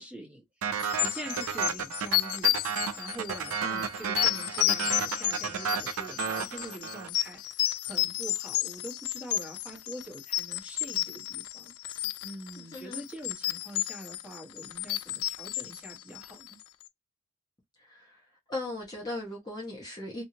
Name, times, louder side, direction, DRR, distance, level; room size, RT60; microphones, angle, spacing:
voice 1, 0.0-2.5 2.9-16.6, right 1 dB, 5° right, 1.3 m, -44 dB
sound 1, 0.6-7.3, right 7 dB, 80° right, 0.5 m, -33 dB
sound 2, 0.8-16.6, left 15 dB, 85° left, 0.3 m, -32 dB
voice 2, 12.6-13.1 17.8-18.2 18.5-20.2, left 2 dB, 20° left, 0.9 m, -38 dB
2.9 x 2.6 x 2.7 m
head